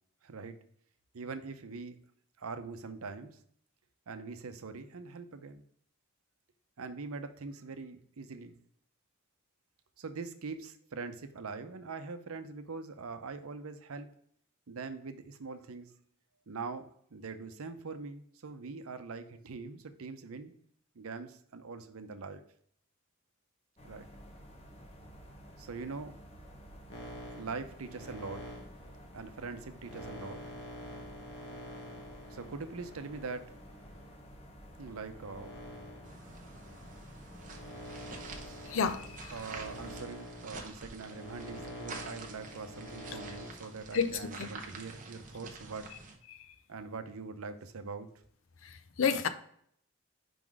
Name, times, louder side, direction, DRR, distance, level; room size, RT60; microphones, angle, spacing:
voice 1, 0.2-0.5 1.1-2.0 2.4-3.4 4.1-5.6 6.8-8.6 10.0-14.1 14.7-15.9 16.5-20.5 21.0-22.4 23.8-24.1 25.6-26.2 27.3-28.5 29.1-30.4 32.3-33.6 34.8-35.6 39.3-45.9 46.7-48.1, right 4 dB, 85° right, 0.7 m, -43 dB
sound 1, 23.8-40.0, equal, 30° left, 0.9 m, -52 dB
sound 2, 26.9-34.3 34.9-43.5, equal, 55° left, 1.4 m, -47 dB
sound 3, 36.0-46.2, right 4 dB, 35° right, 0.8 m, -48 dB
voice 2, 38.7-39.3 43.9-44.1 44.4-44.5 46.3-46.4 48.6-49.3, left 6 dB, 70° left, 0.6 m, -30 dB
5.1 x 3.9 x 4.7 m
head